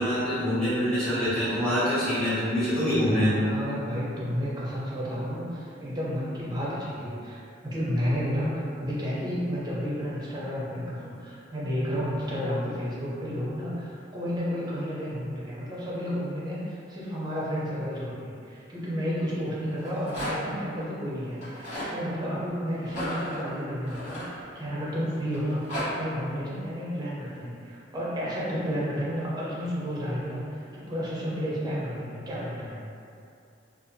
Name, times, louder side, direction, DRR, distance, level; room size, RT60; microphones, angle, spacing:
voice 1, 0.0-3.3, equal, 5° left, -14 dB, 1.0 m, -25 dB
voice 2, 3.0-32.8, equal, 20° right, -7 dB, 0.6 m, -31 dB
Rattle, 19.7-20.6 21.3-21.9 22.8-24.8 25.3-25.9, equal, 40° left, 1.2 m, -34 dB
2.6 x 2.4 x 2.6 m, 2.6 s
head